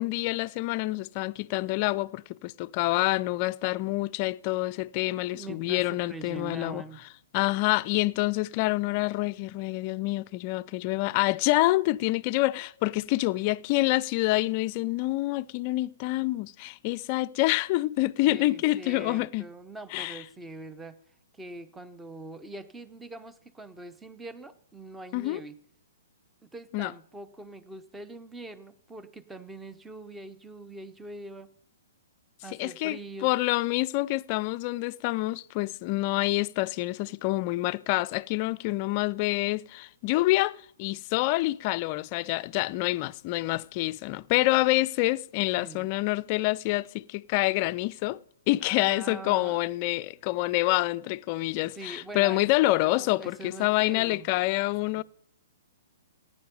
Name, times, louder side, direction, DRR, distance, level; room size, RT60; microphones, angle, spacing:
voice 1, 0.0-6.8 7.3-19.5 19.9-20.2 25.1-25.4 26.7-26.9 32.6-48.2 48.5-55.0, left 19 dB, 40° left, 0.4 m, -27 dB
voice 2, 5.3-7.0 18.3-21.0 21.3-25.6 26.4-31.5 32.4-33.3 45.6-45.9 48.6-49.6 51.8-54.3 54.9-55.0, right 2 dB, 10° right, 0.8 m, -43 dB
15.0 x 9.8 x 5.2 m
hypercardioid pair, 125°, 0 cm